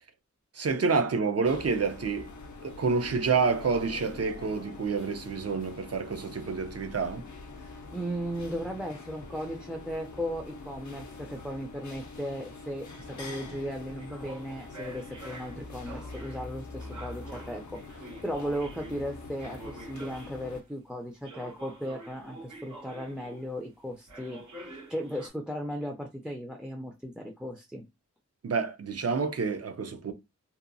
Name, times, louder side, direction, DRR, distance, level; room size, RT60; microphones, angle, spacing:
voice 1, 0.5-2.3 2.6-7.2 28.4-30.1, right 5 dB, 55° right, 0.5 m, -28 dB
sound 1, 1.4-20.6, left 3 dB, 75° left, 0.5 m, -44 dB
voice 2, 7.6-27.8, equal, 5° right, 0.4 m, -36 dB
sound 2, 10.5-20.7 21.2-23.7 24.1-25.3, right 2 dB, 75° right, 1.0 m, -48 dB
2.8 x 2.2 x 2.5 m
wide cardioid pair, 75°, 30 cm